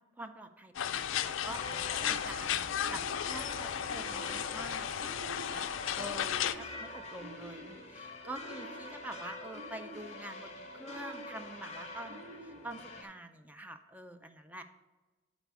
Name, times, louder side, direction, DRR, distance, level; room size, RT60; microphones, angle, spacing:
voice 1, 0.2-14.6, right 1 dB, 10° right, 7 dB, 0.3 m, -46 dB
sound 1, 0.7-6.5, left 10 dB, 80° left, 0.3 m, -34 dB
sound 2, 0.9-1.3 1.7-2.4 2.7-3.4 3.8-4.5 4.9-5.6 6.0-6.8 7.1-7.8 8.2-9.0 9.4-10.2 10.7-11.4 12.0-12.8, right 1 dB, 90° right, 1.7 m, -50 dB
sound 3, 1.4-13.0, left 2 dB, 35° left, 0.8 m, -46 dB
9.2 x 4.1 x 4.6 m, 1.2 s
head